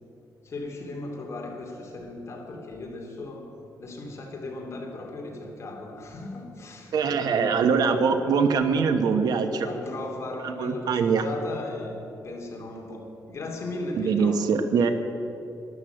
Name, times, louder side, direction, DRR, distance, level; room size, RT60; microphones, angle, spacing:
voice 1, 0.4-3.5 3.8-7.6 9.6-14.5, left 2 dB, 40° left, 0 dB, 2.6 m, -37 dB
voice 2, 6.9-9.7 10.4-11.2 13.9-14.9, right 5 dB, 70° right, 8 dB, 1.1 m, -23 dB
12.5 x 11.5 x 7.9 m, 2.9 s
cardioid pair, 140°, 7 cm